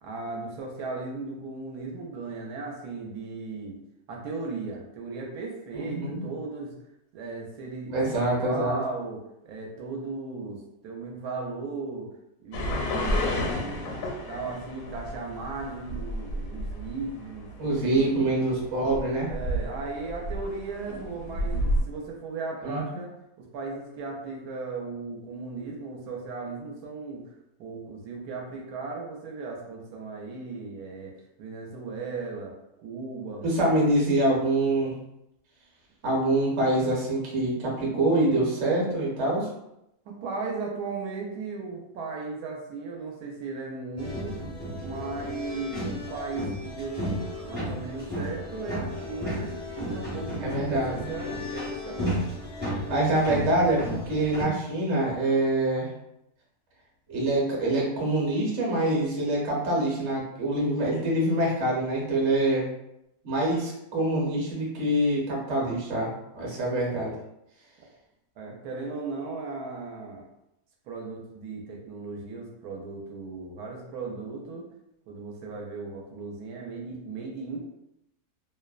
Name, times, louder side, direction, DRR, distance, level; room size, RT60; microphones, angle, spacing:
voice 1, 0.0-3.8 4.1-6.7 7.1-9.2 9.4-12.1 12.4-13.5 14.3-18.5 19.2-23.1 23.4-32.5 32.8-33.4 40.1-44.4 44.8-47.2 47.4-52.4 68.4-70.3 70.9-74.7 75.1-77.6, right 3 dB, 85° right, -1 dB, 1.1 m, -36 dB
voice 2, 5.8-6.2 7.9-8.8 17.6-19.3 22.6-22.8 33.4-34.9 36.0-39.5 50.4-51.1 52.9-55.9 57.1-62.7 63.2-67.1, right 1 dB, 50° right, -4 dB, 1.0 m, -25 dB
sound 1, 12.5-21.8, equal, 85° left, 1.1 m, -31 dB
sound 2, 44.0-54.4, equal, 15° right, 0.3 m, -34 dB
2.8 x 2.1 x 2.3 m, 0.84 s
omnidirectional pair, 1.7 m